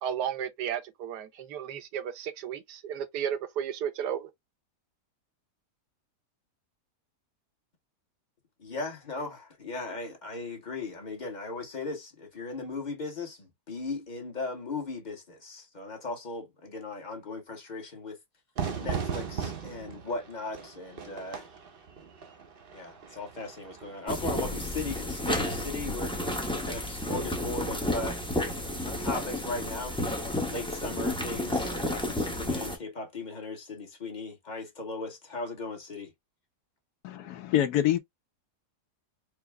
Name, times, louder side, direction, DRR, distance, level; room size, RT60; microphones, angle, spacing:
voice 1, 0.0-4.3, right 9 dB, 80° right, 1.3 m, -33 dB
voice 2, 8.6-18.2 18.8-21.5 22.7-26.2 26.6-28.5 28.8-36.1, left 3 dB, 30° left, 1.0 m, -37 dB
Fire / Fireworks, 18.6-24.1, right 6 dB, 50° right, 0.7 m, -37 dB
sound 1, 24.1-32.8, left 1 dB, 5° left, 0.4 m, -31 dB
voice 3, 37.0-38.0, left 12 dB, 70° left, 1.1 m, -26 dB
4.8 x 2.0 x 3.3 m
omnidirectional pair, 1.8 m